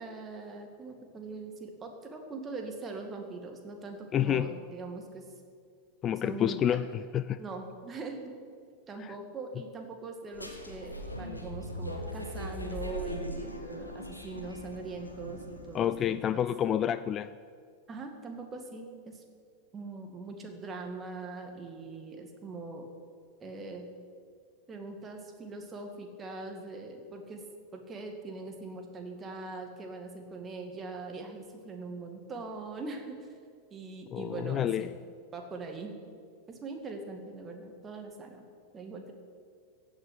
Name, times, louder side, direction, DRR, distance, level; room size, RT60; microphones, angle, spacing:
voice 1, 0.0-5.3 6.1-6.6 7.4-8.3 8.9-16.5 17.9-19.2 19.7-22.9 23.4-23.8 24.7-27.4 27.7-33.3 33.7-34.9 35.3-36.0 36.5-38.4 38.7-39.1, right 3 dB, 20° right, 4 dB, 2.1 m, -41 dB
voice 2, 4.1-4.5 6.0-7.4 9.0-9.1 15.7-17.4 34.1-34.9, left 10 dB, 30° left, 15 dB, 0.3 m, -29 dB
sound 1, 10.3-15.9, equal, 85° left, 1.5 m, -40 dB
15.5 x 6.2 x 9.6 m, 2.2 s
figure-of-eight pair, 90°, 0 cm